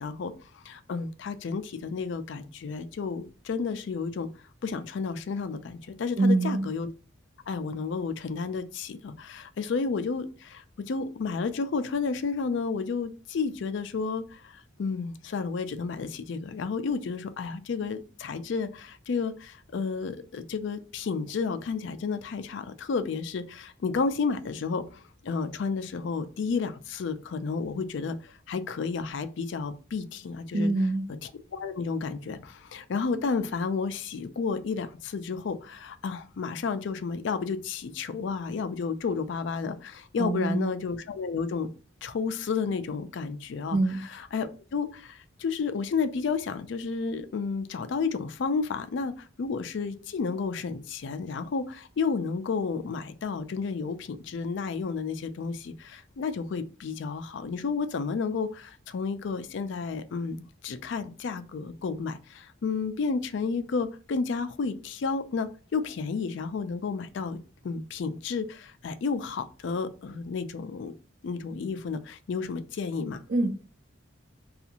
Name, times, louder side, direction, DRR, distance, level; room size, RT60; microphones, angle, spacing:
voice 1, 0.0-4.3 4.6-6.9 7.5-30.7 31.2-41.7 42.0-67.4 67.6-70.9 71.2-73.2, left 5 dB, 60° left, 10 dB, 0.3 m, -31 dB
voice 2, 6.2-6.7 30.5-31.1 40.2-40.7 43.7-44.0 73.3-73.6, right 2 dB, 50° right, 4 dB, 0.4 m, -25 dB
2.6 x 2.4 x 2.8 m, 0.35 s
head